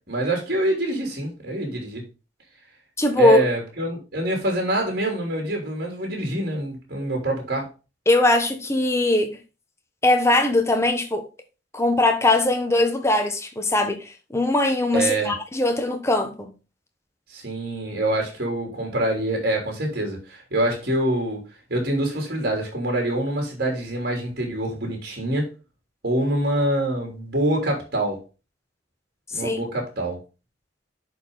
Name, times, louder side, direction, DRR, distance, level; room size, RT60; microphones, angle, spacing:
voice 1, 0.1-2.0 3.2-7.7 14.9-15.3 17.3-21.4 21.7-25.5 26.0-28.2 29.3-30.2, right 1 dB, 55° right, 3.3 m, -25 dB
voice 2, 3.0-3.4 8.1-9.4 10.0-11.2 11.7-16.5 29.3-29.6, left 2 dB, 15° left, 1.2 m, -20 dB
11.0 x 4.7 x 4.0 m
head